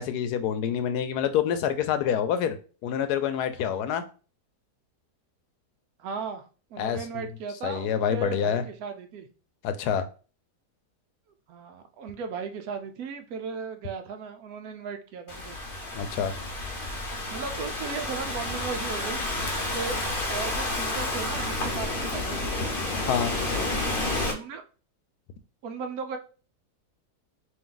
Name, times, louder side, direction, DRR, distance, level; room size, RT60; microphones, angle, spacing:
voice 1, 0.0-2.6 2.8-4.0 6.8-7.2 7.6-8.6 9.6-10.0 15.9-16.3 23.1-23.3, left 8 dB, 75° left, 9 dB, 1.1 m, -27 dB
voice 2, 6.0-6.4 6.7-9.3 11.5-15.6 17.3-19.2 19.7-22.7 24.2-24.6 25.6-26.2, right 5 dB, 70° right, 7 dB, 1.1 m, -36 dB
Thunderstorm / Rain, 15.3-24.3, left 2 dB, 45° left, 0.8 m, -30 dB
3.5 x 2.9 x 3.8 m, 0.37 s
omnidirectional pair, 1.7 m